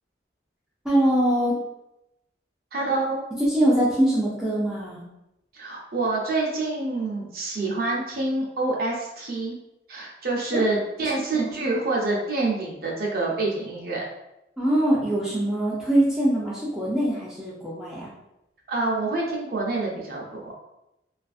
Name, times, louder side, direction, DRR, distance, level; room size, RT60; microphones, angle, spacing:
voice 1, 0.8-1.6 3.3-5.0 10.5-10.6 11.3-11.5 14.6-18.1, right 1 dB, 5° right, -7 dB, 0.4 m, -23 dB
voice 2, 2.7-3.2 5.5-9.5 9.9-14.0 18.7-20.6, right 2 dB, 55° right, -2 dB, 0.5 m, -27 dB
2.4 x 2.4 x 2.3 m, 0.88 s
head